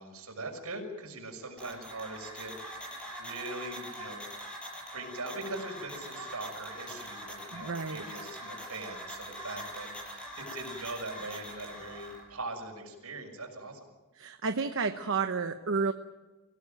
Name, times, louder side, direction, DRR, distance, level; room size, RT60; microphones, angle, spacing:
voice 1, 0.0-4.2 4.9-13.8, right 2 dB, 80° right, 3 dB, 6.1 m, -41 dB
sound 1, 1.6-12.2, equal, 5° left, 6.6 m, -43 dB
voice 2, 7.5-8.0 14.2-15.9, right 4 dB, 60° right, 7 dB, 1.0 m, -31 dB
25.0 x 17.5 x 9.2 m, 1.2 s
head